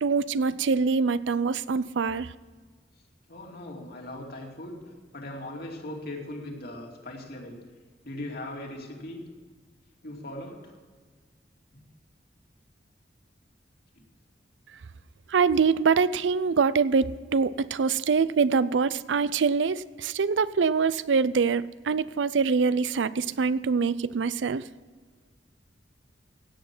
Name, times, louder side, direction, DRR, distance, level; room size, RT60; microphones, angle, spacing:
voice 1, 0.0-2.3 15.3-24.7, right 5 dB, 85° right, 17 dB, 0.5 m, -24 dB
voice 2, 3.3-7.6 8.0-9.2 10.0-10.7, left 1 dB, 60° left, 0 dB, 2.6 m, -39 dB
16.5 x 8.3 x 6.0 m, 1.5 s
head